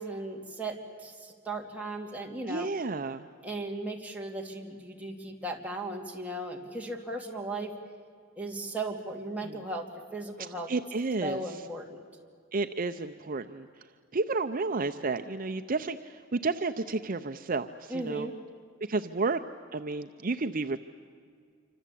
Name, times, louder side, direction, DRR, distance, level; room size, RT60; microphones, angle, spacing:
voice 1, 0.0-2.7 3.4-7.7 8.4-10.7 11.2-12.0 17.9-18.3, right 2 dB, 10° right, 0 dB, 2.8 m, -37 dB
voice 2, 2.5-3.3 9.4-9.6 10.4-11.4 12.5-13.7 14.1-18.3 18.9-19.4 19.7-20.8, right 3 dB, 45° right, 8 dB, 0.7 m, -31 dB
27.5 x 25.5 x 8.5 m, 2.1 s
head